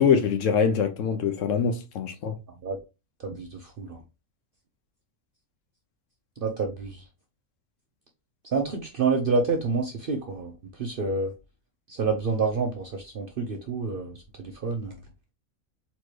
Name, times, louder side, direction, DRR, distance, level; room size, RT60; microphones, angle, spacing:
voice 1, 0.0-2.4, left 6 dB, 70° left, 0.9 m, -23 dB
voice 2, 3.2-4.0 6.4-7.0 8.5-10.5 10.8-11.3 11.9-15.0, right 4 dB, 55° right, 0.6 m, -28 dB
4.2 x 3.0 x 3.1 m
omnidirectional pair, 1.5 m